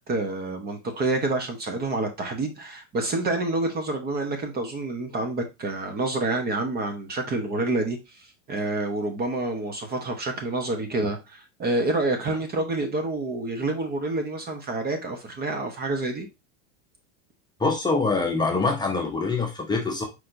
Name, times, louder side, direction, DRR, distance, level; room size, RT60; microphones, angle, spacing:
voice 1, 0.0-16.3, right 2 dB, 25° right, 1.0 m, -28 dB
voice 2, 17.6-20.1, left 3 dB, 10° left, 0.8 m, -24 dB
4.6 x 4.2 x 2.6 m
supercardioid pair, 140°, 36 cm